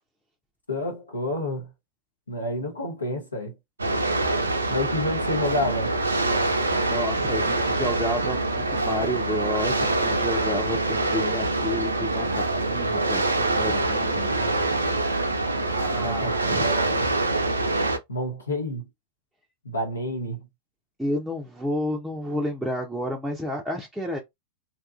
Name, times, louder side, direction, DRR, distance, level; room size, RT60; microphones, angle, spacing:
voice 1, 0.7-1.7 2.3-3.5 4.7-5.9 15.9-17.1 18.1-18.9 19.6-20.4, left 1 dB, 80° left, 0.9 m, -29 dB
sound 1, 3.8-18.0, right 2 dB, 80° right, 0.4 m, -25 dB
voice 2, 6.8-14.3 15.7-16.7 21.0-24.2, left 1 dB, ahead, 0.5 m, -31 dB
2.8 x 2.3 x 2.4 m
figure-of-eight pair, 90°, 0 cm